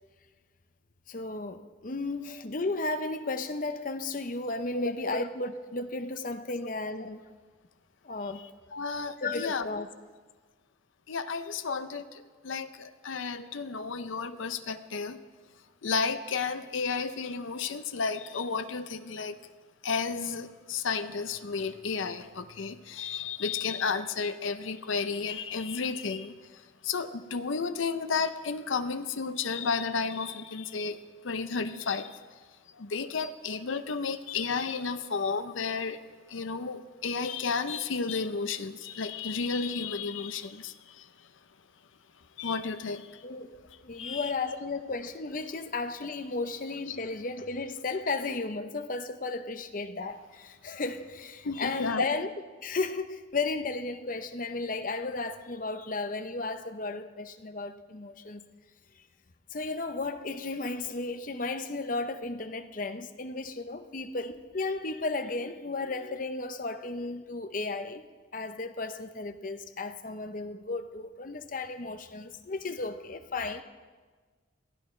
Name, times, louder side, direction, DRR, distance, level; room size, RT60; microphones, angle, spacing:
voice 1, 1.1-7.3 8.0-8.4 9.2-9.9 43.2-52.3 52.6-58.4 59.0-59.1 59.5-68.1 68.3-73.6, left 3 dB, 45° left, 0.7 m, -34 dB
voice 2, 8.7-9.7 11.1-15.2 15.8-19.4 19.8-32.2 32.7-36.0 36.3-41.1 42.4-43.2 43.9-44.3 46.9-47.0 51.4-52.1, left 5 dB, 85° left, 0.6 m, -32 dB
22.5 x 15.5 x 3.2 m
head